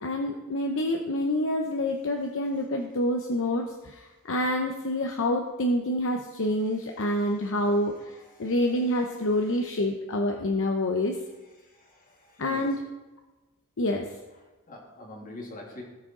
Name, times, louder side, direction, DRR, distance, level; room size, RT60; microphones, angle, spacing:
voice 1, 0.0-8.1 8.4-11.1 12.4-12.8 13.8-14.1, left 1 dB, 60° left, 2 dB, 0.8 m, -27 dB
voice 2, 11.8-12.7 14.7-15.8, left 1 dB, 40° left, -1 dB, 2.4 m, -43 dB
17.5 x 6.3 x 3.8 m, 1.2 s
head